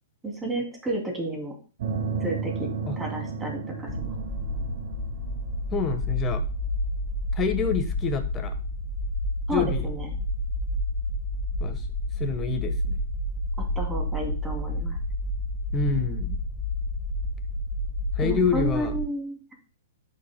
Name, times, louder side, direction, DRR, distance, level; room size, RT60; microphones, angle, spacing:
voice 1, 0.2-1.5 2.2-2.7 3.0-3.6 4.0-4.1 9.5-10.2 13.8-15.0 18.2-19.5, right 1 dB, 10° right, 0 dB, 2.8 m, -31 dB
sound 1, 1.8-6.7, right 5 dB, 65° right, 1.8 m, -33 dB
sound 2, 3.9-19.0, left 1 dB, 50° left, 1.1 m, -29 dB
voice 2, 5.7-6.4 7.3-8.5 9.5-9.9 11.6-11.8 12.2-13.0 15.7-16.4 18.2-19.0, left 5 dB, 20° left, 7 dB, 1.2 m, -27 dB
11.0 x 6.7 x 2.2 m, 0.35 s
hypercardioid pair, 130°, 0 cm